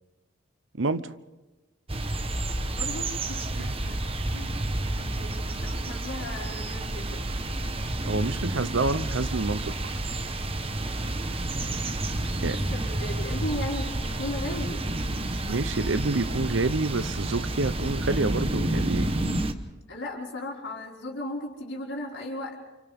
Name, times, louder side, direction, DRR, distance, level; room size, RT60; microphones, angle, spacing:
voice 1, 0.8-1.1 3.5-3.7 8.1-9.7 12.4-12.6 15.5-19.1, right 3 dB, 75° right, 13 dB, 0.8 m, -28 dB
sound 1, 1.9-19.5, right 1 dB, 30° right, 1.1 m, -30 dB
voice 2, 2.7-4.0 4.3-4.7 5.0-7.3 12.2-14.9 19.9-22.6, left 1 dB, 75° left, -3 dB, 5.3 m, -36 dB
29.5 x 29.0 x 3.6 m, 1.1 s
head